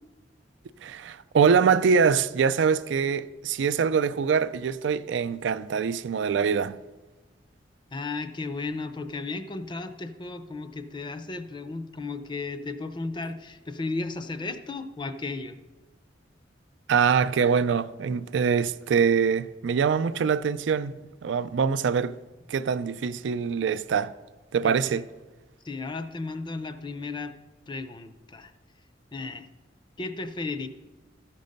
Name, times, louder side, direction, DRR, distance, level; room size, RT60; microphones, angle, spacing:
voice 1, 0.8-6.8 16.9-22.2 22.5-24.1 24.5-25.1, right 6 dB, 75° right, 0.4 m, -24 dB
voice 2, 7.9-15.6 24.6-24.7 25.6-27.3 27.7-28.5 29.1-29.5 30.0-30.7, left 3 dB, 25° left, 0.5 m, -34 dB
13.0 x 5.3 x 5.2 m
head